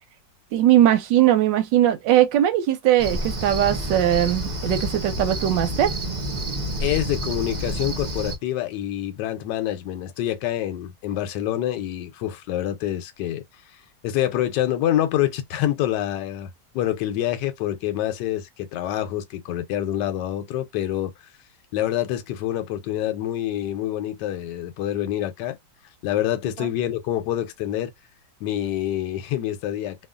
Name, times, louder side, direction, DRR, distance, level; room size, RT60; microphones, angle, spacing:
voice 1, 0.5-6.0, right 12 dB, 90° right, 1.3 m, -19 dB
Cricket, 3.0-8.4, right 1 dB, 55° right, 0.4 m, -29 dB
voice 2, 6.8-13.4 14.0-21.1 21.7-25.6 26.0-27.9 28.4-30.1, left 12 dB, 80° left, 1.2 m, -26 dB
3.0 x 2.3 x 2.2 m
omnidirectional pair, 1.9 m